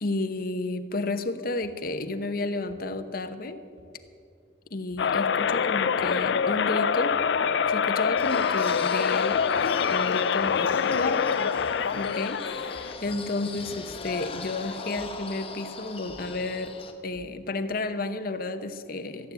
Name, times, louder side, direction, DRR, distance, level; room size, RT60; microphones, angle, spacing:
voice 1, 0.0-3.6 4.7-7.2 7.7-9.5 9.9-11.5 12.0-16.8 17.0-19.3, left 2 dB, 55° left, 9 dB, 0.9 m, -32 dB
sound 1, 1.6-1.7 2.7-2.8 3.8-3.9 4.9-5.1 6.0-6.2 7.1-7.3 8.2-8.4 9.3-9.5 10.5-10.7 11.6-11.8 12.7-13.0 13.9-14.1 15.0-15.2 16.1-16.3 17.1-17.4, left 1 dB, 85° right, 4.4 m, -53 dB
sound 2, 5.0-12.9, left 6 dB, 75° left, 0.4 m, -25 dB
sound 3, 8.2-16.9, left 4 dB, 30° left, 1.1 m, -39 dB
14.5 x 9.7 x 8.1 m, 2.5 s
head